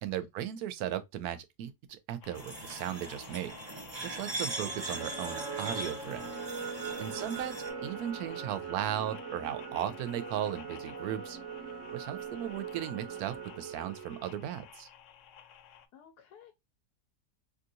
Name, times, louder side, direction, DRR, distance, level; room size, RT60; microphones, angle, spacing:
voice 1, 0.0-3.6 4.0-6.3 7.0-7.5 7.8-11.4 11.9-14.9, right 10 dB, 75° right, 1.1 m, -36 dB
sound 1, 2.2-15.9, left 9 dB, 65° left, 0.8 m, -53 dB
sound 2, 2.3-7.7, right 2 dB, 30° right, 0.5 m, -40 dB
sound 3, 4.4-14.6, right 5 dB, 55° right, 1.2 m, -41 dB
voice 2, 7.0-7.4 15.9-16.5, left 9 dB, 85° left, 1.2 m, -54 dB
3.6 x 2.5 x 2.6 m
omnidirectional pair, 1.7 m